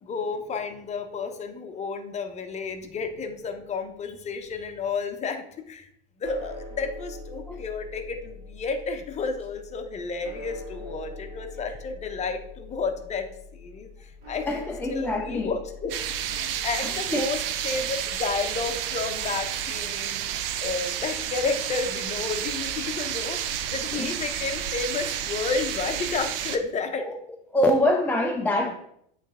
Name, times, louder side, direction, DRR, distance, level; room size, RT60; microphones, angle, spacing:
voice 1, 0.0-5.9 6.2-13.3 13.5-16.0 16.4-20.3 20.6-27.1, left 4 dB, 25° left, 7 dB, 0.8 m, -31 dB
sound 1, 6.2-20.5, left 2 dB, 50° right, 2.3 m, -44 dB
voice 2, 14.5-15.5 16.8-17.3 23.9-24.1 27.0-27.2 27.5-28.8, left 1 dB, 5° left, 2 dB, 0.3 m, -25 dB
sound 2, 15.9-26.6, right 10 dB, 70° right, 0.7 m, -31 dB
8.2 x 3.3 x 3.6 m, 0.72 s
hypercardioid pair, 110°, 29 cm